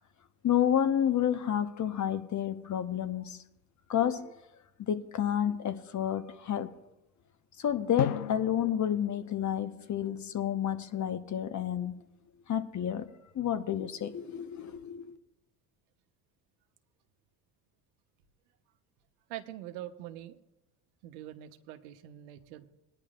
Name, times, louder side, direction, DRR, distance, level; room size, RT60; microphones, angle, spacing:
voice 1, 0.4-3.4 3.9-4.3 4.8-6.7 7.6-12.0 12.5-13.1 13.3-15.0, left 9 dB, 40° left, 9 dB, 1.1 m, -30 dB
Drum, 8.0-10.7, left 14 dB, 90° left, 0.7 m, -38 dB
voice 2, 19.3-20.4 21.0-22.7, right 13 dB, 75° right, 7 dB, 1.1 m, -44 dB
20.0 x 10.0 x 2.5 m, 0.91 s
hypercardioid pair, 70°, 44 cm